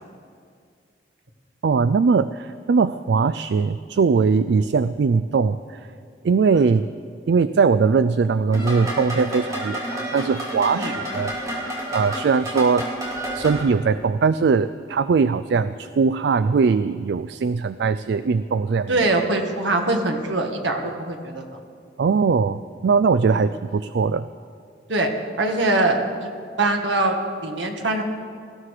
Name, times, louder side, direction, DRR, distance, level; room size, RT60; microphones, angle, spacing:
voice 1, 1.6-5.6 6.2-6.9 7.3-11.3 11.9-12.9 13.4-19.1 22.0-24.3, right 5 dB, 65° right, 13 dB, 0.3 m, -20 dB
sound 1, 8.5-13.6, right 1 dB, 20° right, 3.0 m, -30 dB
voice 2, 18.9-21.5 23.3-23.4 24.9-25.1 25.4-26.3 26.6-28.0, right 2 dB, 85° right, 3 dB, 1.8 m, -23 dB
19.0 x 14.5 x 4.9 m, 2.2 s
head